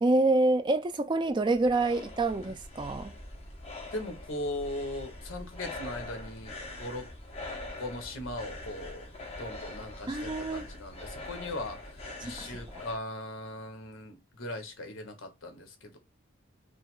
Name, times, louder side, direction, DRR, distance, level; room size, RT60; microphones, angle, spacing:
voice 1, 0.0-3.1 10.1-10.6 12.2-12.5, right 2 dB, 20° right, 0.4 m, -27 dB
sound 1, 1.2-13.0, left 2 dB, 30° left, 1.1 m, -43 dB
voice 2, 3.9-7.1 7.8-9.1 9.4-16.0, left 1 dB, 75° left, 1.1 m, -39 dB
5.4 x 2.0 x 3.6 m
head